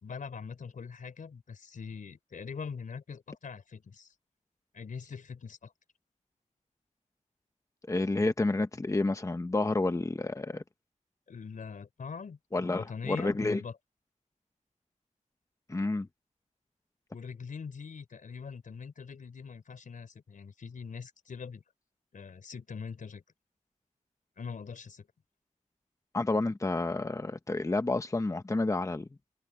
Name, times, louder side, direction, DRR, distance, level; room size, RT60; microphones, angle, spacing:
voice 1, 0.0-4.1 4.7-5.7 11.3-13.8 17.1-21.6 22.1-23.2 24.4-25.1, left 5 dB, 85° left, 4.2 m, -42 dB
voice 2, 7.9-10.6 12.5-13.6 15.7-16.1 26.1-29.1, left 2 dB, 25° left, 1.1 m, -30 dB
wide cardioid pair, 105°, 13 cm